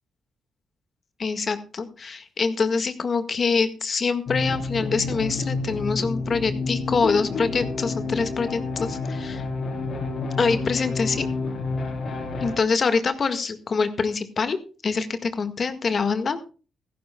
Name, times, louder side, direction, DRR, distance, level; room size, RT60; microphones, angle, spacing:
voice 1, 1.2-9.4 10.4-11.3 12.4-14.6 14.8-16.5, left 4 dB, 45° left, 9 dB, 1.7 m, -25 dB
sound 1, 4.3-12.6, left 3 dB, 60° left, 4.2 m, -29 dB
15.5 x 15.5 x 2.3 m, 0.36 s
cardioid pair, 95°, 0 cm